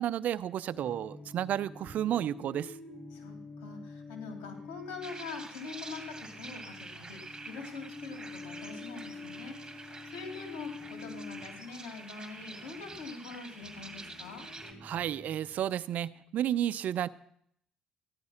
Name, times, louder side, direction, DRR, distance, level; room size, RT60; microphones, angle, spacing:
voice 1, 0.0-2.8 14.8-17.1, right 11 dB, 65° right, 16 dB, 0.6 m, -32 dB
sound 1, 0.7-15.8, left 4 dB, 30° left, 4.0 m, -48 dB
voice 2, 3.1-14.4, left 4 dB, 90° left, 4 dB, 3.0 m, -44 dB
sound 2, 5.0-14.7, right 3 dB, 20° right, 2.3 m, -47 dB
14.5 x 11.0 x 5.8 m, 0.68 s
supercardioid pair, 70°, 3 cm